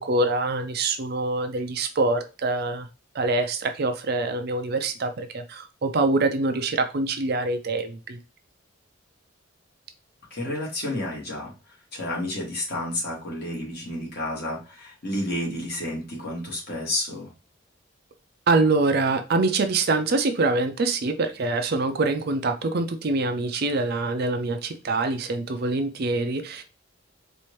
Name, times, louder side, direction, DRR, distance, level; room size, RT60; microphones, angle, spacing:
voice 1, 0.0-2.9 3.1-8.2 18.5-26.6, right 3 dB, 50° right, 7 dB, 0.5 m, -25 dB
voice 2, 10.3-17.3, left 1 dB, 50° left, -3 dB, 1.9 m, -31 dB
4.3 x 2.6 x 3.0 m, 0.31 s
head